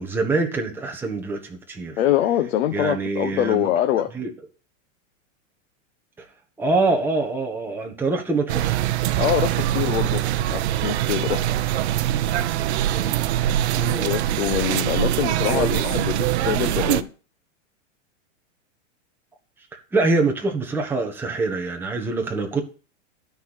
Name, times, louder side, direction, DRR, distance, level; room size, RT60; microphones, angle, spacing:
voice 1, 0.0-2.0 2.7-3.7 4.1-4.3 6.2-6.3 6.6-8.8 12.9-13.2 13.7-14.1 15.4-15.8 19.7-22.6, right 3 dB, 5° right, 1 dB, 1.5 m, -25 dB
voice 2, 2.0-4.1 9.2-10.2 10.5-11.4 13.9-17.1, left 11 dB, 70° left, 6 dB, 1.3 m, -24 dB
sound 1, 8.5-17.0, right 12 dB, 55° right, 0.8 m, -23 dB
12.5 x 4.7 x 8.2 m, 0.36 s
supercardioid pair, 165°, 38 cm